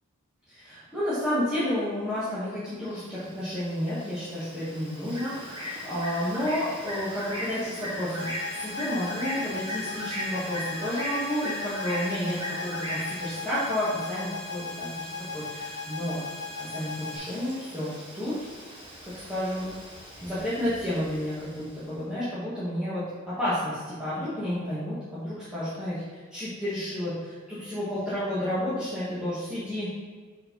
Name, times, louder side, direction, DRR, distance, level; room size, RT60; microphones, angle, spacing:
voice 1, 0.5-16.2 16.6-18.4 19.0-19.7 20.2-29.9, left 1 dB, 5° right, -14 dB, 1.9 m, -31 dB
Bird, 3.1-21.8, equal, 25° right, 1.5 m, -39 dB
sound 1, 8.2-17.2, left 4 dB, 85° left, 1.3 m, -38 dB
5.6 x 4.7 x 5.3 m, 1.5 s
head